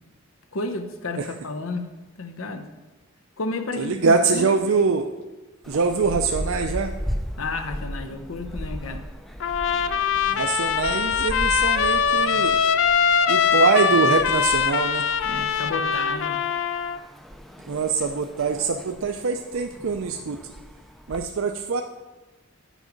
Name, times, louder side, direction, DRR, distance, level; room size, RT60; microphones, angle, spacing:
voice 1, 0.5-1.9 2.2-2.7 3.4-4.5 7.4-9.1 15.2-16.4, left 3 dB, 80° left, 7 dB, 0.8 m, -31 dB
voice 2, 3.8-5.1 5.7-6.9 10.3-12.6 13.3-15.1 17.7-20.5 21.1-21.8, right 4 dB, 75° right, 4 dB, 0.5 m, -23 dB
sound 1, 5.6-21.2, equal, ahead, 0.4 m, -37 dB
Trumpet, 9.4-17.0, left 6 dB, 65° left, 0.4 m, -22 dB
9.2 x 6.2 x 5.1 m, 1.1 s
head